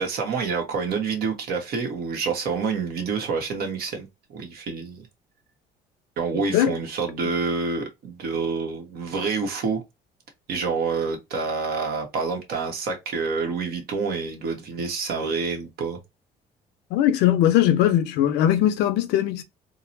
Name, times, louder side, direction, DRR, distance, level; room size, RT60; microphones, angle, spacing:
voice 1, 0.0-5.0 6.2-9.8 10.5-16.0, right 4 dB, 65° right, 1.1 m, -27 dB
voice 2, 16.9-19.4, left 11 dB, 90° left, 0.6 m, -20 dB
3.8 x 2.0 x 2.6 m
cardioid pair, 110°, 17 cm